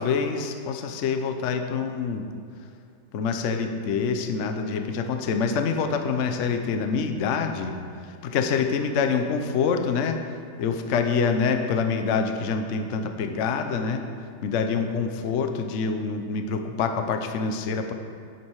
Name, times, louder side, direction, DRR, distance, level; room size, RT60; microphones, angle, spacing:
voice 1, 0.0-2.2 3.1-7.7 8.1-10.2 10.6-14.0 14.4-17.9, left 5 dB, 85° left, 6 dB, 0.6 m, -26 dB
10.5 x 7.6 x 4.7 m, 2.4 s
omnidirectional pair, 2.2 m